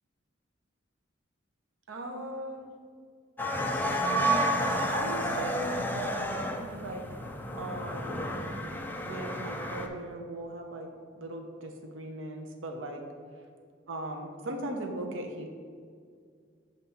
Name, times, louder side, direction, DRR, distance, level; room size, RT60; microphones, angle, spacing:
voice 1, 1.9-2.7 4.9-7.0 7.6-8.2 9.0-13.0 13.9-15.5, right 1 dB, 75° right, 4 dB, 0.7 m, -38 dB
sound 1, 3.4-9.9, equal, 10° left, 0.3 m, -31 dB
6.9 x 2.6 x 5.6 m, 2.1 s
head